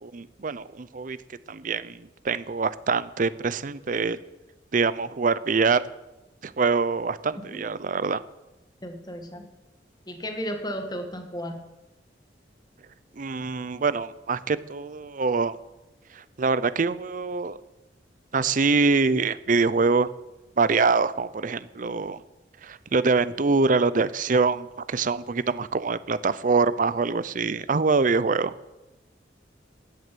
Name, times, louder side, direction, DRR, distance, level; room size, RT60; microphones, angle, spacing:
voice 1, 0.0-1.2 1.5-4.2 4.7-5.8 6.4-8.2 13.2-15.6 16.2-17.6 18.3-20.1 20.6-22.2 22.6-28.5, right 4 dB, 45° right, 16 dB, 0.6 m, -24 dB
voice 2, 8.8-9.5 10.1-11.6, equal, 25° left, 4 dB, 1.8 m, -34 dB
13.5 x 7.7 x 8.4 m, 1.0 s
head